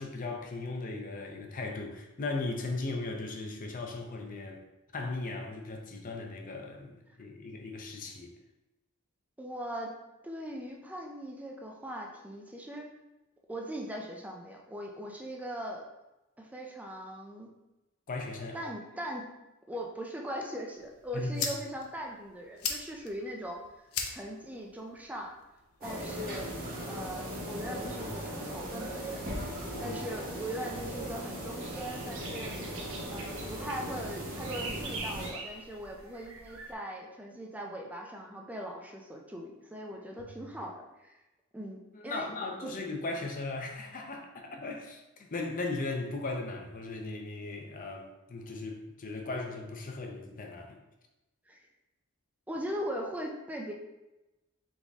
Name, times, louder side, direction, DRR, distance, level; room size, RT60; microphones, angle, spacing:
voice 1, 0.0-4.6 4.9-8.3 18.1-18.6 21.1-21.5 29.7-30.0 41.9-50.8, left 3 dB, 40° left, 3 dB, 0.6 m, -37 dB
voice 2, 9.4-9.9 10.2-12.9 13.5-15.8 16.4-17.5 18.5-19.2 19.7-23.6 24.1-25.3 25.8-26.5 26.8-29.2 29.8-32.6 32.9-41.1 41.5-42.3 42.6-42.7 51.5-51.7 52.5-53.7, equal, 5° right, 0 dB, 0.4 m, -40 dB
sound 1, 20.7-26.7, left 6 dB, 75° left, 0.7 m, -41 dB
sound 2, 25.8-35.3, equal, 40° right, 1.1 m, -38 dB
sound 3, 31.6-36.7, right 2 dB, 65° right, 0.7 m, -44 dB
4.0 x 3.6 x 3.5 m, 0.99 s
head